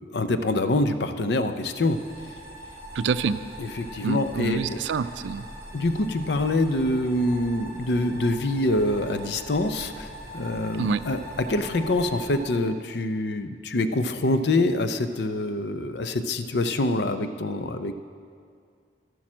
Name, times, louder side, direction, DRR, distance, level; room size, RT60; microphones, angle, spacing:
voice 1, 0.0-2.0 3.6-4.8 5.7-17.9, left 2 dB, 70° left, 9 dB, 0.6 m, -25 dB
sound 1, 1.3-12.4, equal, 15° right, 3.1 m, -42 dB
voice 2, 2.9-3.4 4.0-5.5 10.8-11.0, right 5 dB, 85° right, 14 dB, 0.4 m, -26 dB
11.5 x 8.7 x 6.1 m, 2.2 s
head